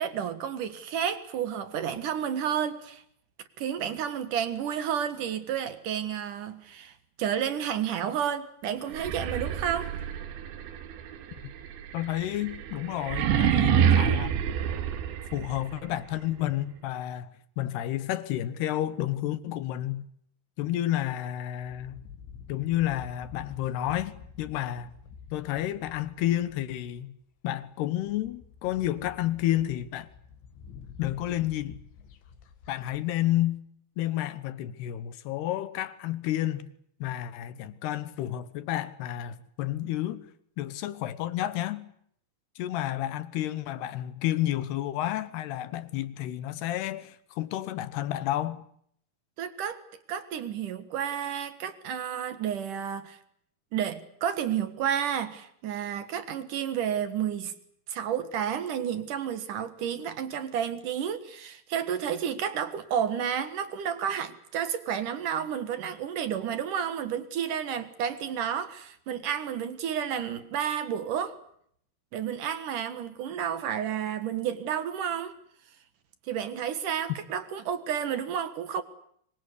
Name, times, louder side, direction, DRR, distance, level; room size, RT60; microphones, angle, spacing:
voice 1, 0.0-3.0 3.6-6.9 7.2-9.9 49.4-49.8 50.1-53.2 53.7-57.5 57.9-71.4 72.1-75.3 76.3-78.8, right 9 dB, 60° right, 2.5 m, -31 dB
sound 1, 8.9-15.8, right 8 dB, 80° right, 3.9 m, -27 dB
voice 2, 11.9-14.4 15.3-20.1 20.6-22.0 22.5-24.9 25.3-27.2 27.4-30.1 31.0-31.8 32.7-33.6 34.0-36.7 37.0-40.3 40.6-41.9 42.6-48.6, left 13 dB, 70° left, 3.0 m, -30 dB
sound 2, 21.6-27.1 27.6-27.7 28.0-33.5, left 6 dB, 85° left, 4.4 m, -49 dB
25.0 x 24.0 x 8.3 m
omnidirectional pair, 5.3 m